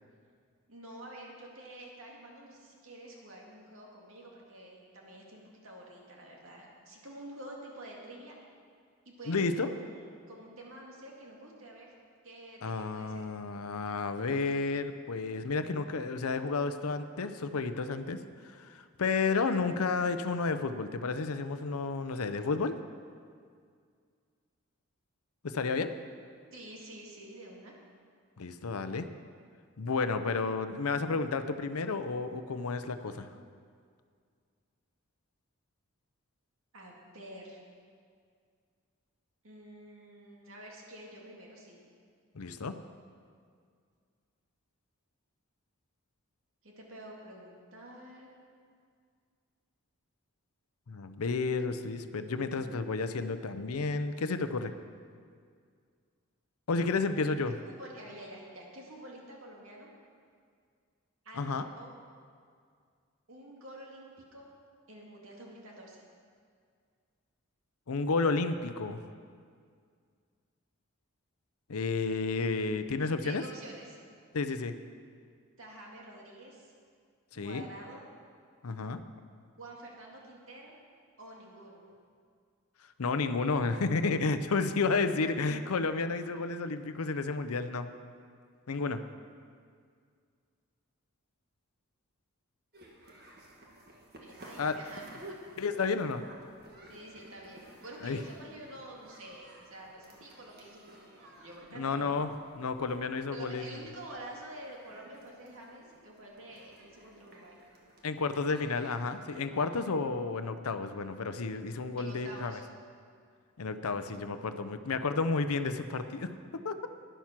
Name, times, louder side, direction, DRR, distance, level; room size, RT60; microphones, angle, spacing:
voice 1, 0.7-8.4 9.1-11.9 12.2-13.3 26.5-27.7 36.7-37.6 39.4-41.8 46.6-48.3 52.2-52.8 57.6-59.9 61.2-61.9 63.3-64.5 64.9-66.0 72.0-72.3 73.2-74.0 75.6-76.7 77.3-78.0 79.6-80.7 81.2-81.9 94.2-95.5 96.9-102.2 103.3-107.6 109.3-109.6 112.0-112.6, right 1 dB, 70° right, -1 dB, 2.2 m, -48 dB
voice 2, 9.3-9.7 12.6-18.2 18.5-22.7 25.4-25.9 28.4-29.1 29.8-33.3 42.4-42.8 50.9-54.7 56.7-57.6 61.4-61.6 67.9-69.0 71.7-73.4 74.3-74.7 77.4-77.6 78.6-79.0 83.0-87.9 88.7-89.0 94.6-94.8 95.6-96.2 98.0-98.2 101.7-102.3 102.5-103.8 108.0-112.6 113.6-116.3 116.6-116.9, left 4 dB, 85° left, 10 dB, 0.6 m, -31 dB
sound 1, 92.7-109.5, right 1 dB, 45° right, 1.7 m, -54 dB
12.0 x 10.0 x 5.9 m, 2.1 s
head